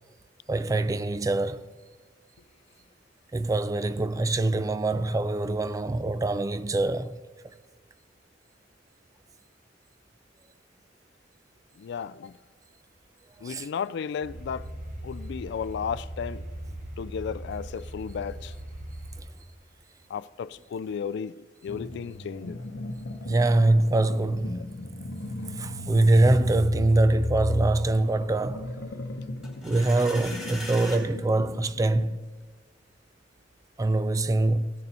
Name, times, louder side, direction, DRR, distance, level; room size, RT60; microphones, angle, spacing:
voice 1, 0.5-1.7 3.3-7.2 13.4-13.7 19.2-19.3 23.2-24.6 25.5-28.7 29.6-32.2 33.8-34.7, right 2 dB, 20° right, 0.3 m, -24 dB
voice 2, 11.8-12.3 13.4-14.7 15.0-16.5 17.0-18.5 20.1-21.3 21.6-22.6, left 7 dB, 65° left, 0.3 m, -34 dB
sound 1, 14.2-19.2, right 1 dB, 45° right, 1.7 m, -39 dB
sound 2, 21.7-32.2, left 1 dB, 80° left, 0.8 m, -36 dB
sound 3, 29.4-31.0, left 1 dB, ahead, 3.6 m, -39 dB
17.0 x 6.8 x 4.2 m
head